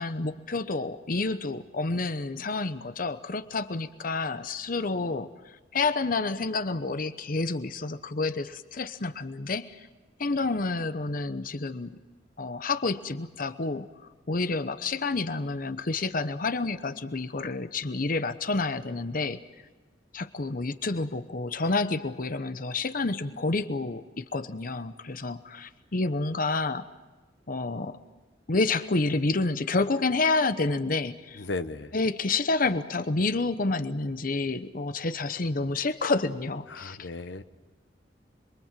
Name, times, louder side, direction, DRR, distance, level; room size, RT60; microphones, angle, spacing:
voice 1, 0.0-9.9 10.2-12.0 12.4-13.9 14.3-19.4 20.1-26.9 27.5-28.0 28.5-31.4 31.9-37.1, left 3 dB, 50° left, 11 dB, 0.9 m, -29 dB
voice 2, 31.4-31.9 36.7-37.4, left 3 dB, 85° left, 10 dB, 1.1 m, -35 dB
27.0 x 23.0 x 7.5 m, 1.2 s
head